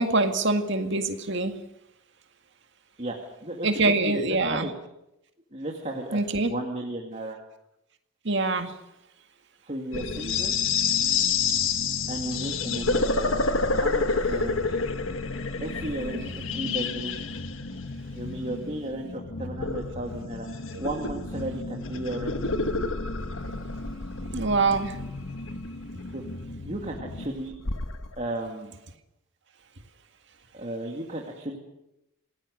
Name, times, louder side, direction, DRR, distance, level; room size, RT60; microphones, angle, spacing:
voice 1, 0.0-1.6 3.6-4.7 6.1-6.5 8.2-8.7 16.1-16.3 16.6-16.8 24.3-25.0, right 3 dB, 55° right, 6 dB, 2.0 m, -25 dB
voice 2, 3.4-4.7 5.5-7.4 9.6-10.5 12.1-14.8 15.6-17.2 18.2-22.4 26.1-26.2 26.6-27.5 28.2-28.7 30.5-31.6, right 1 dB, 30° right, 0 dB, 2.3 m, -34 dB
sound 1, 9.9-28.2, left 4 dB, 65° left, 1.6 m, -29 dB
27.5 x 19.0 x 6.5 m, 0.87 s
head